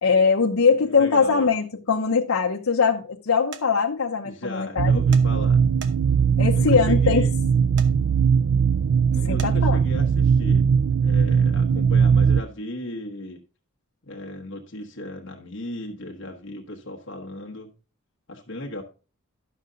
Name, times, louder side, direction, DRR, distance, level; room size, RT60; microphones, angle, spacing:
voice 1, 0.0-5.0 6.4-7.2 9.2-9.8, left 5 dB, 80° left, 0.8 m, -21 dB
voice 2, 0.6-1.5 4.2-5.6 6.5-7.3 9.1-10.7 11.0-13.4 14.1-17.7 18.3-18.8, left 1 dB, 60° left, 1.2 m, -36 dB
sound 1, 3.5-3.7 5.1-5.3 5.8-6.2 7.8-7.9 9.4-9.5, right 6 dB, 55° right, 1.0 m, -38 dB
sound 2, 4.8-12.4, right 6 dB, 75° right, 0.4 m, -19 dB
11.5 x 6.7 x 3.8 m
head